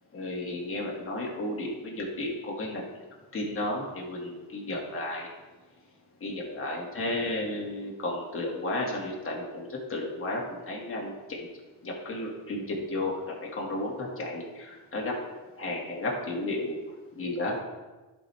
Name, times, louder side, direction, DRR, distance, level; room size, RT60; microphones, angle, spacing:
voice 1, 0.1-3.0 3.3-5.3 6.2-11.5 11.8-13.1 13.4-15.1 15.6-16.8 17.2-17.5, left 1 dB, 35° left, -3 dB, 2.3 m, -33 dB
11.5 x 4.9 x 3.5 m, 1.2 s
cardioid pair, 95°, 37 cm